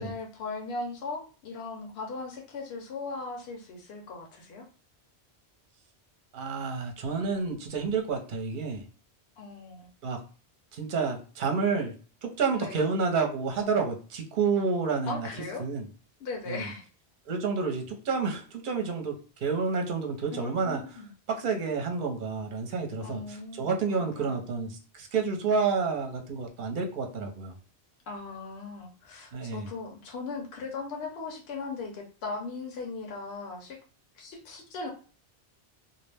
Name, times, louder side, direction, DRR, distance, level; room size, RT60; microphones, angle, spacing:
voice 1, 0.0-4.6 9.4-9.9 12.5-12.8 15.1-15.6 16.2-16.8 20.3-21.1 23.0-23.7 24.0-24.3 28.1-33.8 34.1-34.9, left 3 dB, 70° left, 0 dB, 0.9 m, -38 dB
voice 2, 6.3-8.8 10.0-10.2 10.7-11.9 12.2-15.3 15.6-15.8 16.5-16.7 17.3-20.8 21.3-27.5 29.3-29.7, right 5 dB, 55° right, 3 dB, 0.7 m, -29 dB
2.4 x 2.0 x 3.3 m, 0.38 s
omnidirectional pair, 1.1 m